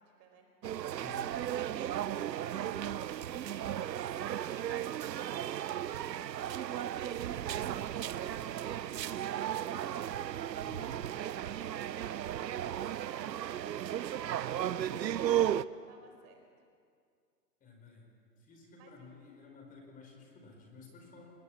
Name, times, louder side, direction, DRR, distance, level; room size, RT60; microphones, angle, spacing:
voice 1, 0.0-3.5 3.8-14.8 15.6-16.4 18.8-19.1, right 4 dB, 30° right, 3 dB, 4.5 m, -58 dB
sound 1, 0.6-15.6, right 11 dB, 85° right, 0.9 m, -35 dB
voice 2, 1.0-1.3 10.5-11.0 17.6-18.1 18.4-21.3, left 4 dB, 15° left, 1 dB, 4.3 m, -53 dB
29.5 x 20.0 x 7.5 m, 2.2 s
hypercardioid pair, 145°, 49 cm